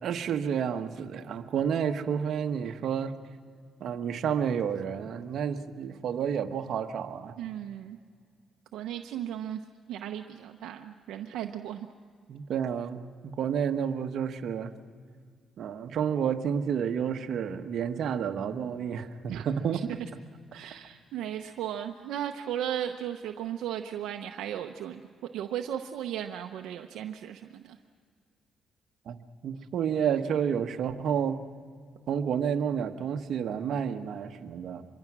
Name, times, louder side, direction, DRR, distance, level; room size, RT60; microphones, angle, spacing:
voice 1, 0.0-3.1 3.8-7.4 12.3-14.7 15.6-20.0 29.1-31.4 32.1-34.8, right 8 dB, 65° right, 6 dB, 1.3 m, -30 dB
voice 2, 7.4-8.0 8.7-9.6 9.9-11.9 19.3-19.8 20.5-25.1 25.3-27.8, right 10 dB, 85° right, 4 dB, 0.8 m, -36 dB
25.5 x 23.0 x 6.2 m, 2.1 s
cardioid pair, 90°, 0 cm